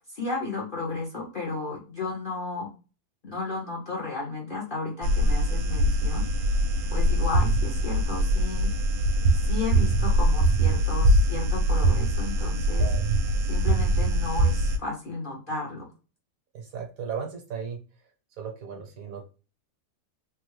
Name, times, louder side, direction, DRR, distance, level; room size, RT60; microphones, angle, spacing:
voice 1, 0.1-2.7 3.2-6.3 6.9-8.7 9.4-12.9 13.5-15.9, left 3 dB, 45° left, -4 dB, 0.8 m, -33 dB
sound 1, 5.0-14.8, right 1 dB, 85° right, 1.2 m, -23 dB
voice 2, 12.8-13.1 16.5-17.8 18.4-19.3, right 6 dB, 65° right, 2 dB, 1.2 m, -36 dB
3.3 x 2.0 x 3.1 m, 0.34 s
omnidirectional pair, 1.7 m